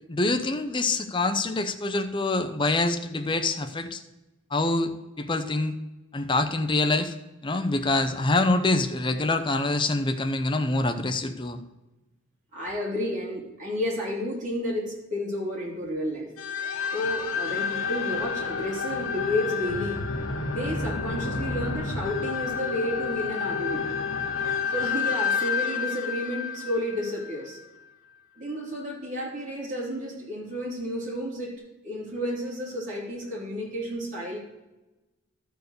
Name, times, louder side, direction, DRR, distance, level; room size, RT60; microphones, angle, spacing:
voice 1, 0.1-4.0 4.5-4.9 5.2-5.7 6.1-7.1 7.4-11.6, left 2 dB, 20° left, 7 dB, 0.6 m, -25 dB
voice 2, 12.5-16.3 16.9-20.0 20.5-23.9 24.7-27.6 28.4-31.5 31.8-34.4, equal, 35° right, -5 dB, 3.3 m, -31 dB
sound 1, 16.4-27.6, left 5 dB, 65° left, 1.1 m, -30 dB
12.5 x 4.6 x 6.6 m, 1.0 s
head